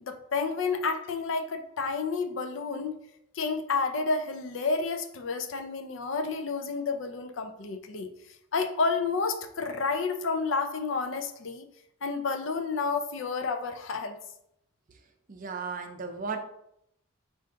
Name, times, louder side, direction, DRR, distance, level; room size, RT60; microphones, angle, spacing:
voice 1, 0.0-3.0 3.3-8.1 8.5-11.7 12.0-14.2, left 4 dB, 65° left, 6 dB, 0.5 m, -30 dB
voice 2, 15.3-16.4, right 5 dB, 40° right, 5 dB, 0.5 m, -35 dB
4.4 x 2.5 x 3.7 m, 0.76 s
head